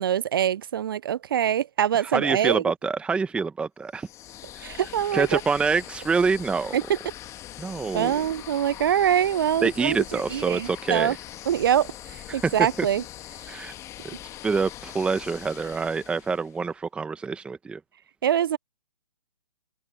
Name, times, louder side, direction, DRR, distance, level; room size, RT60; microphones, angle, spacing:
voice 1, 0.0-2.6 4.6-5.4 6.7-7.0 7.9-11.1 11.5-13.0 18.2-18.6, right 10 dB, 40° right, 0.4 m, -24 dB
voice 2, 2.0-4.1 4.6-4.8 5.1-6.8 7.6-8.2 9.6-11.2 12.3-12.6 13.5-13.7 14.4-17.8, right 4 dB, 5° right, 1.2 m, -26 dB
sound 1, 3.9-16.6, left 13 dB, 15° left, 1.6 m, -42 dB
open air
figure-of-eight pair, 135°, 17 cm